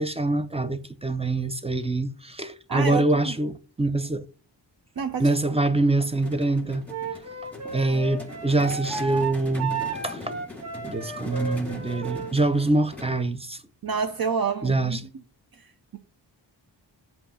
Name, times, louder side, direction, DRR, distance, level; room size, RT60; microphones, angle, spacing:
voice 1, 0.0-4.3 5.2-6.9 7.7-9.8 10.0-10.3 10.8-13.6 14.6-15.0, right 2 dB, 15° right, 0.4 m, -25 dB
voice 2, 2.7-3.4 5.0-5.3 13.8-15.0 15.5-15.6, right 5 dB, 55° right, 0.6 m, -28 dB
sound 1, 6.1-13.1, left 2 dB, 5° left, 2.0 m, -41 dB
Wind instrument woodwind instrument, 6.9-12.3, right 5 dB, 35° right, 1.6 m, -33 dB
7.7 x 2.8 x 5.5 m
wide cardioid pair, 95°, 43 cm